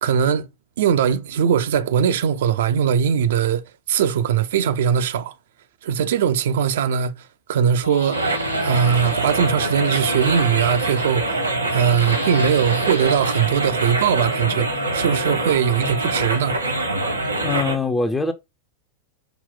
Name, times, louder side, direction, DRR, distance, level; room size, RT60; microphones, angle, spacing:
voice 1, 0.0-0.5 0.8-3.6 3.9-5.3 5.8-8.2 8.6-11.4 11.7-16.6, right 8 dB, 60° right, 0.4 m, -20 dB
sound 1, 7.8-9.2 9.5-11.3 11.7-13.9, left 1 dB, 85° left, 1.2 m, -34 dB
sound 2, 8.1-17.8, right 2 dB, 85° right, 1.0 m, -24 dB
voice 2, 17.4-18.3, left 3 dB, 15° left, 0.5 m, -22 dB
5.8 x 2.1 x 3.7 m
figure-of-eight pair, 90°, 0 cm